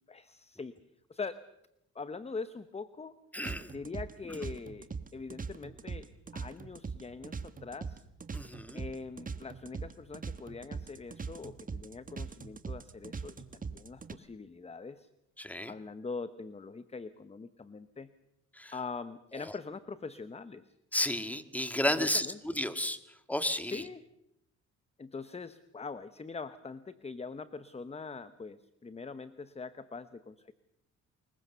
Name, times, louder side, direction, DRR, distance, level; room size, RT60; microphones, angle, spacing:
voice 1, 0.1-0.8 1.1-1.4 1.9-3.1 3.7-6.1 6.3-8.0 8.7-15.1 15.7-18.1 18.7-20.6 22.0-22.4 23.7-24.0 25.0-30.5, left 4 dB, 20° left, 13 dB, 1.0 m, -43 dB
voice 2, 3.3-3.7 8.3-8.8 15.4-15.7 18.6-18.7 20.9-23.0 23.3-23.8, left 1 dB, 5° left, 10 dB, 1.9 m, -32 dB
sound 1, 3.4-14.1, right 5 dB, 25° right, 1.4 m, -41 dB
25.5 x 21.5 x 6.9 m, 0.81 s
cardioid pair, 90°, 30 cm